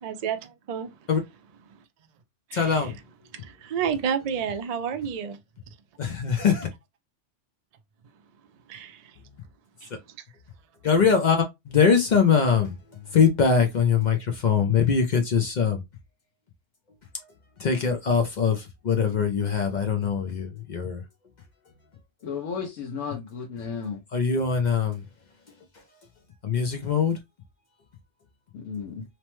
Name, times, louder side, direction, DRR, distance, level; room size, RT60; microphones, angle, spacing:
voice 1, 0.0-0.9 1.7-1.8 2.5-2.9 3.3-5.4 8.7-9.2 9.8-9.9, right 7 dB, 80° right, 0.3 m, -30 dB
voice 2, 2.5-3.0 6.0-6.7 10.8-11.4 11.7-15.8 17.6-21.0 24.1-25.0 26.4-27.2, left 6 dB, 55° left, 0.5 m, -22 dB
voice 3, 22.2-24.0 28.5-29.0, left 6 dB, 90° left, 1.0 m, -33 dB
3.0 x 2.1 x 2.9 m
omnidirectional pair, 1.2 m